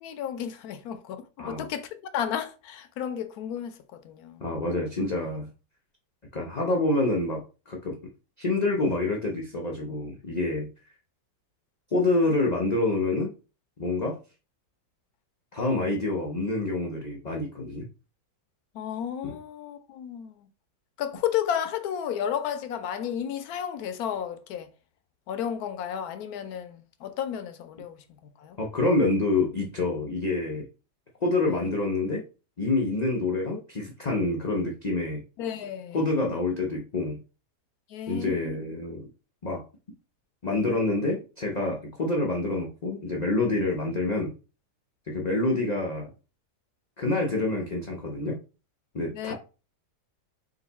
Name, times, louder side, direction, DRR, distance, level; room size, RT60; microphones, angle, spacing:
voice 1, 0.0-4.4 18.7-20.5 21.0-24.7 25.3-28.0 28.4-28.6 35.4-36.0 37.9-38.6 49.1-49.3, left 9 dB, 70° left, 1.0 m, -33 dB
voice 2, 4.4-5.5 6.3-8.0 8.4-10.7 11.9-13.3 13.8-14.2 15.5-17.8 19.2-19.3 28.6-30.7 31.2-32.2 32.6-35.2 35.9-37.2 38.1-39.1 39.4-39.6 40.4-44.3 45.1-46.1 47.0-48.4 48.9-49.3, left 2 dB, 55° left, 0.4 m, -27 dB
3.8 x 2.6 x 4.0 m
omnidirectional pair, 1.8 m